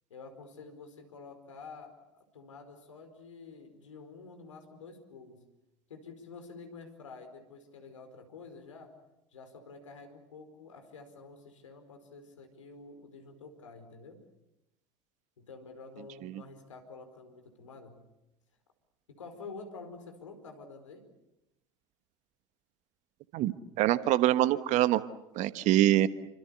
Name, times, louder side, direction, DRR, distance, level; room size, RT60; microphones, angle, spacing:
voice 1, 0.1-5.5 5.9-9.0 9.3-14.2 15.4-18.0 19.1-21.1, left 4 dB, 80° left, 7 dB, 4.7 m, -49 dB
voice 2, 23.3-25.0 25.3-26.1, right 14 dB, 50° right, 14 dB, 1.3 m, -25 dB
29.5 x 25.5 x 7.0 m, 0.93 s
figure-of-eight pair, 75°, 16 cm